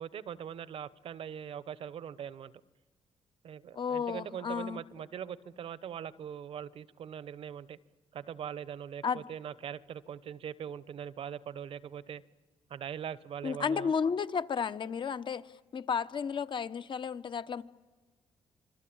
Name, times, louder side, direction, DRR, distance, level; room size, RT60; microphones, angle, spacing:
voice 1, 0.0-2.5 3.4-7.8 8.1-12.2 12.7-13.9, right 9 dB, 70° right, 1.0 m, -41 dB
voice 2, 3.7-4.8 9.0-9.3 13.4-17.6, left 6 dB, 55° left, 1.0 m, -33 dB
26.5 x 23.0 x 8.8 m
supercardioid pair, 60°, 10 cm